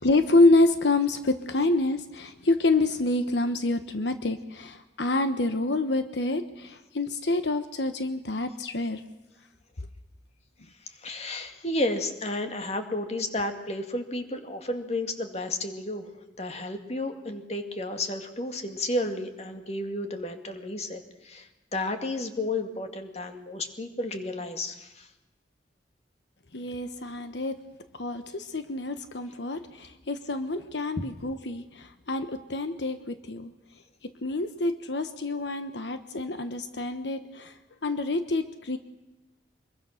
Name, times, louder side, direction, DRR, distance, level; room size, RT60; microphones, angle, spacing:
voice 1, 0.0-9.0 26.5-27.6 27.9-33.5 34.2-37.6 37.8-38.8, left 2 dB, 85° left, 9 dB, 1.2 m, -27 dB
voice 2, 10.9-16.1 16.4-25.1, left 1 dB, 35° left, 6 dB, 2.2 m, -32 dB
25.0 x 22.5 x 6.6 m, 1.1 s
head